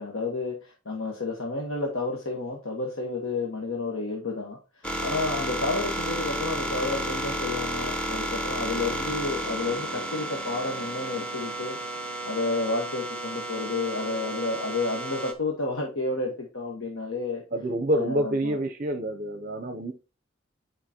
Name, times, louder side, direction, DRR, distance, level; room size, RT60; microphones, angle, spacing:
voice 1, 0.0-11.8 12.2-17.4 17.9-18.6, left 3 dB, 70° left, 1.3 m, -31 dB
sound 1, 4.8-15.3, right 1 dB, 5° left, 0.9 m, -32 dB
voice 2, 17.5-19.9, right 1 dB, 40° right, 0.6 m, -27 dB
10.0 x 5.0 x 2.9 m
head